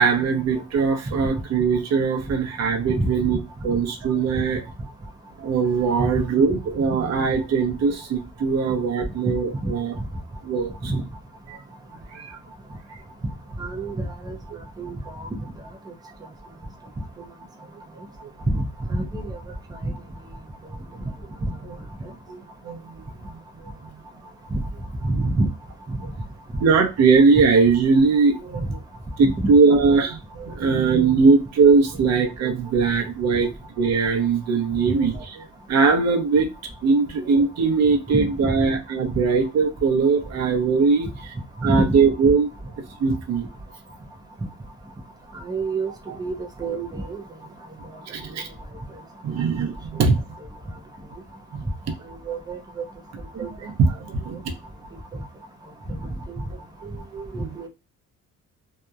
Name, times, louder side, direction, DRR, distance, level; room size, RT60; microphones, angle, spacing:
voice 1, 0.0-3.4 3.6-4.6 5.4-9.9 10.4-10.9 11.5-11.6 12.1-12.4 21.6-21.8 22.3-22.4 22.6-23.7 25.1-25.2 26.6-28.8 29.2-33.5 33.8-36.5 36.8-41.3 41.6-42.5 43.0-43.5 46.1-46.2 48.1-48.5 49.2-50.2 51.5-51.6 53.3-54.5 56.8-57.5, right 4 dB, 55° right, 3 dB, 0.7 m, -21 dB
voice 2, 13.6-14.3 14.8-15.3 18.5-18.6 18.9-19.4 19.8-19.9 24.5-24.6 25.0-25.5 25.9-26.0 29.2-29.5 38.1-38.5 41.6-41.8 45.5-45.9 46.2-47.2 52.3-52.6 53.4-53.5 56.3-56.4 57.3-57.7, right 2 dB, 15° right, 3 dB, 0.5 m, -26 dB
2.8 x 2.1 x 2.4 m, 0.27 s
cardioid pair, 130°, 31 cm